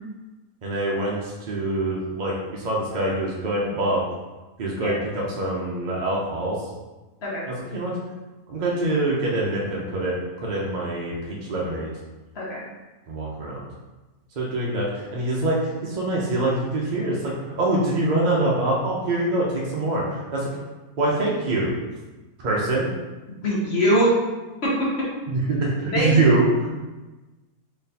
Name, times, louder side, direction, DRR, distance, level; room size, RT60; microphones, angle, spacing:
voice 1, 0.6-4.0 4.6-6.6 7.5-7.9 8.5-11.9 13.1-13.6 14.4-14.8 15.1-20.5 21.0-21.7 22.4-22.9 25.3-26.7, right 2 dB, 55° right, -4 dB, 0.5 m, -24 dB
voice 2, 23.4-24.1 24.6-24.7 25.9-26.1, equal, 50° left, -5 dB, 1.1 m, -22 dB
4.0 x 3.2 x 2.7 m, 1.2 s
omnidirectional pair, 1.5 m